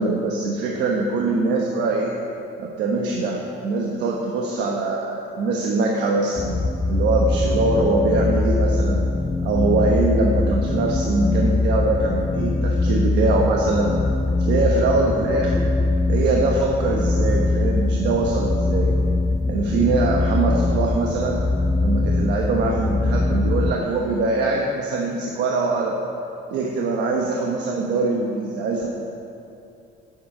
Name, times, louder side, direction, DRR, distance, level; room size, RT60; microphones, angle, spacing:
voice 1, 0.0-2.1 2.6-9.1 9.4-13.9 14.4-15.7 16.1-18.9 19.5-21.4 21.8-26.0 26.5-28.9, right 3 dB, 65° right, -1 dB, 1.2 m, -23 dB
sound 1, 6.4-23.8, left 2 dB, 10° left, 0.3 m, -22 dB
9.0 x 7.9 x 8.9 m, 2.6 s
cardioid pair, 160°, 19 cm